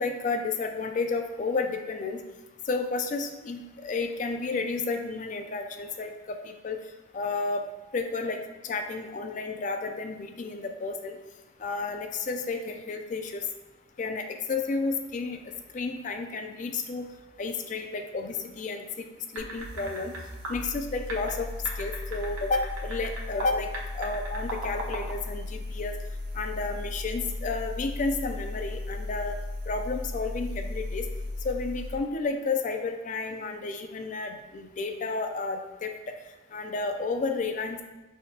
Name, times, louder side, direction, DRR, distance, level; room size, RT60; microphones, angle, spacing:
voice 1, 0.0-2.2 2.7-6.8 7.1-7.6 7.9-11.1 11.6-13.4 14.0-15.4 15.7-17.1 17.4-18.9 19.3-20.1 20.5-21.5 21.8-23.7 23.9-25.9 26.3-29.4 29.7-31.1 31.4-35.9 36.5-37.8, left 3 dB, 40° left, 5 dB, 0.3 m, -31 dB
sound 1, 19.4-32.0, left 2 dB, 50° right, 0.5 m, -36 dB
sound 2, 19.4-20.2 20.4-20.5 21.1-23.5 23.7-25.1, right 2 dB, 90° right, 1.0 m, -37 dB
5.5 x 3.4 x 2.7 m, 1.1 s
head